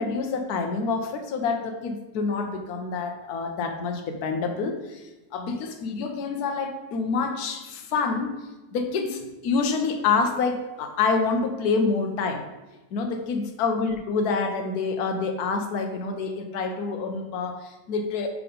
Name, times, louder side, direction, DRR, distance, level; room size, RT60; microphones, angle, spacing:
voice 1, 0.0-5.0 5.3-8.4 8.7-12.4 12.9-18.3, left 4 dB, 65° left, 5 dB, 1.2 m, -27 dB
5.9 x 3.8 x 5.1 m, 1.1 s
omnidirectional pair, 1.9 m